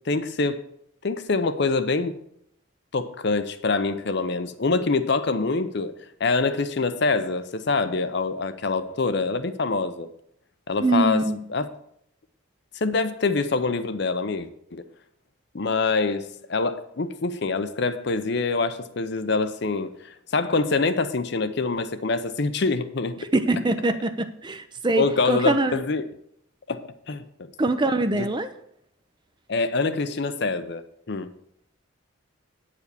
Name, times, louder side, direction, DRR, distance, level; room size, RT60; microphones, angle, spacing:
voice 1, 0.1-0.7 1.0-2.2 2.9-5.9 6.2-10.1 10.7-11.7 12.7-14.8 15.5-23.3 25.0-26.0 26.7-27.5 28.1-28.3 29.5-31.3, left 3 dB, 55° left, 10 dB, 0.6 m, -25 dB
voice 2, 10.8-11.5 23.2-25.8 27.6-28.5, right 2 dB, 20° right, 9 dB, 0.5 m, -23 dB
9.3 x 5.0 x 6.8 m, 0.71 s
head